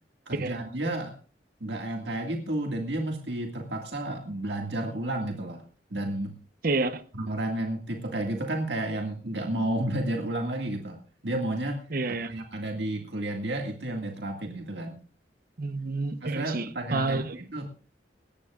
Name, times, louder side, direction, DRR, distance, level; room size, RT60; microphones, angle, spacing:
voice 1, 0.3-1.1 1.6-5.6 5.9-6.3 7.1-11.0 11.2-11.8 12.2-14.9 16.2-17.7, right 1 dB, 65° right, 2.0 m, -31 dB
voice 2, 6.6-7.0 11.9-12.3 15.6-17.4, right 3 dB, 50° right, 0.9 m, -29 dB
19.5 x 17.5 x 2.4 m
head